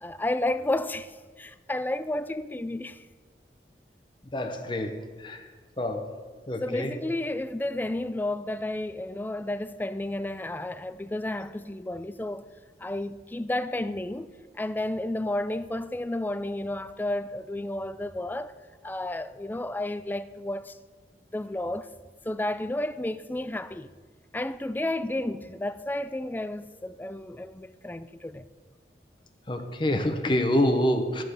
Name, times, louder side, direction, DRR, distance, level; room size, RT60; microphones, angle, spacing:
voice 1, 0.0-3.1 6.6-12.5 12.8-18.5 18.8-20.8 21.3-21.9 22.2-23.9 24.3-28.4, left 1 dB, 10° left, 0.4 m, -32 dB
voice 2, 4.3-5.4 5.8-6.1 6.5-6.9 29.5-31.2, left 1 dB, 25° left, 0.9 m, -26 dB
13.5 x 7.5 x 6.6 m
head